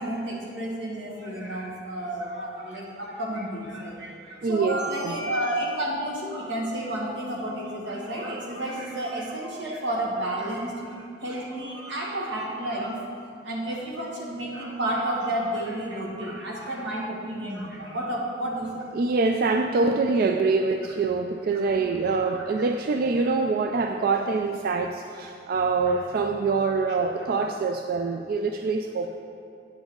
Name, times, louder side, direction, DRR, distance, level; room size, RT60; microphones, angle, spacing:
voice 1, 0.0-13.0 13.4-18.9 21.5-21.7 22.3-22.5 25.9-26.0, right 1 dB, 90° right, -3 dB, 1.6 m, -31 dB
voice 2, 4.4-5.2 18.9-29.2, right 4 dB, 55° right, 5 dB, 0.3 m, -25 dB
8.7 x 7.0 x 3.7 m, 2.5 s
head